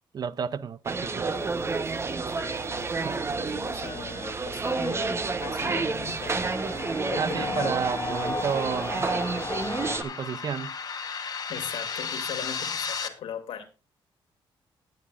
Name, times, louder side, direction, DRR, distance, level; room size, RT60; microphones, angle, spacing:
voice 1, 0.1-1.3 3.0-3.2 7.2-9.1 10.0-10.7, right 7 dB, 45° right, 0.5 m, -31 dB
sound 1, 0.9-10.0, right 4 dB, 30° right, 1.0 m, -30 dB
voice 2, 2.3-3.1 3.4-6.6 7.1-7.9 11.5-13.6, left 8 dB, 85° left, 2.3 m, -39 dB
sound 2, 5.4-13.1, left 6 dB, 45° left, 1.3 m, -37 dB
sound 3, 6.4-10.0, left 4 dB, 30° left, 0.7 m, -35 dB
19.5 x 7.4 x 2.5 m
cardioid pair, 115°, 9 cm